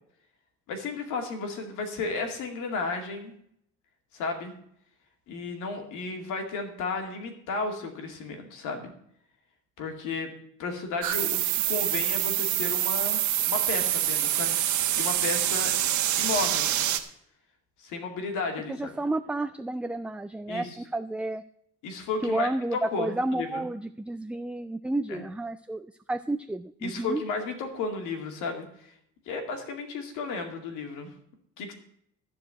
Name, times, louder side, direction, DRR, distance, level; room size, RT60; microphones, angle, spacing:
voice 1, 0.7-3.3 4.1-4.5 5.3-8.9 9.8-10.3 10.6-15.7 16.2-16.7 17.8-18.9 20.5-20.8 21.8-23.7 25.1-25.3 26.8-28.9 29.3-31.1 31.6-31.7, left 4 dB, 90° left, 4 dB, 2.3 m, -33 dB
sound 1, 11.0-17.0, right 12 dB, 75° right, 1.3 m, -26 dB
voice 2, 18.7-21.4 22.2-27.2, right 2 dB, 5° right, 10 dB, 0.4 m, -31 dB
13.5 x 4.8 x 8.8 m, 0.71 s
cardioid pair, 85°, 30 cm